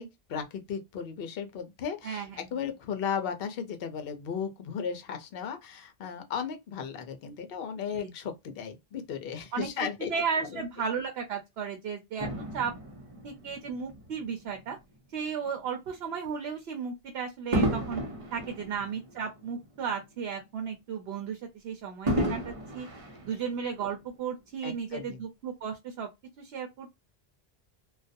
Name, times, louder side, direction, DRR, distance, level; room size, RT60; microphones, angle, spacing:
voice 1, 0.0-2.2 2.5-10.1 10.5-10.6 18.6-18.7 24.6-25.2, left 7 dB, 65° left, 0.8 m, -35 dB
voice 2, 2.0-2.5 9.5-12.3 12.5-12.7 13.2-14.8 15.1-18.0 18.3-22.9 23.2-26.1 26.4-26.9, right 6 dB, 80° right, 0.8 m, -34 dB
Fireworks, 12.2-14.8 15.4-15.6 17.5-20.0 20.4-20.5 22.1-23.9 24.7-24.8, right 1 dB, 40° right, 0.6 m, -33 dB
2.4 x 2.2 x 2.5 m
omnidirectional pair, 1.1 m